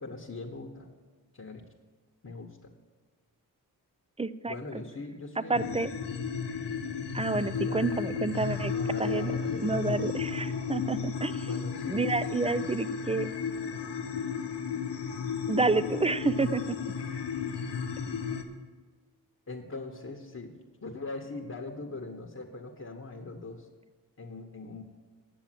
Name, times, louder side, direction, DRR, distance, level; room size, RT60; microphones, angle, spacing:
voice 1, 0.0-0.9 1.3-1.6 2.2-2.7 4.5-5.5 7.3-8.0 8.7-10.6 11.4-12.6 19.5-23.7 24.2-24.8, left 3 dB, 40° left, 1 dB, 1.1 m, -41 dB
voice 2, 4.2-4.5 5.5-5.9 7.1-8.7 9.0-9.3 9.6-11.5 11.9-13.3 15.5-16.8, right 3 dB, 15° right, 14 dB, 0.4 m, -29 dB
sound 1, 5.5-18.4, left 6 dB, 85° left, 0.9 m, -33 dB
8.9 x 7.1 x 7.6 m, 1.4 s
cardioid pair, 45°, 40 cm